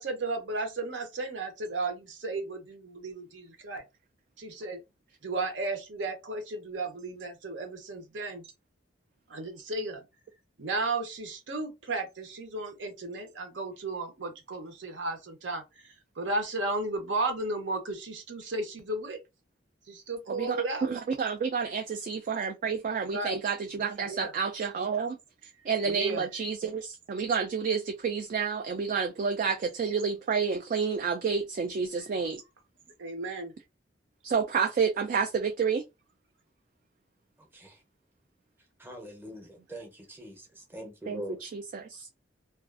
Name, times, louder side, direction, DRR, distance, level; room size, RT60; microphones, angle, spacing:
voice 1, 0.0-3.8 4.4-4.8 5.2-8.5 9.3-10.0 10.6-19.2 19.9-20.9 23.1-23.4 24.0-24.3 25.8-26.3 33.0-33.5, right 2 dB, 70° right, 0.7 m, -34 dB
voice 2, 20.3-25.2 25.7-32.4 34.2-35.8 41.1-42.1, right 5 dB, 45° right, 0.3 m, -30 dB
voice 3, 38.8-40.4 40.7-41.4, equal, 10° right, 0.7 m, -42 dB
2.4 x 2.3 x 2.3 m
head